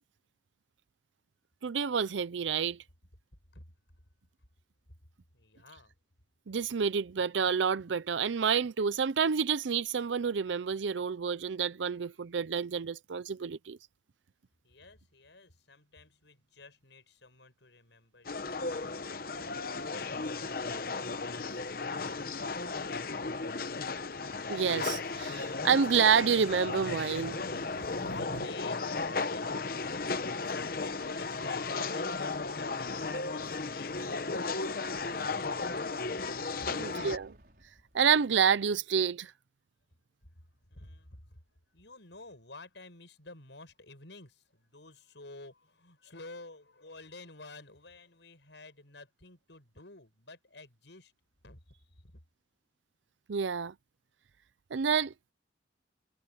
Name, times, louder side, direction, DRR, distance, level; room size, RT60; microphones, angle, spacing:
voice 1, 1.6-2.8 6.5-13.8 24.5-27.4 27.9-28.0 36.7-37.3 37.9-39.3 53.3-53.7 54.7-55.1, right 6 dB, 85° right, 0.5 m, -28 dB
voice 2, 5.3-5.9 14.6-23.0 28.0-34.1 35.0-35.8 36.6-36.7 40.7-41.4 41.7-51.1 51.4-51.6 52.0-52.1, left 2 dB, 75° left, 6.4 m, -51 dB
sound 1, 18.2-37.2, left 3 dB, 50° left, 0.9 m, -35 dB
Explosion, 37.1-38.7, right 1 dB, 55° right, 5.3 m, -59 dB
head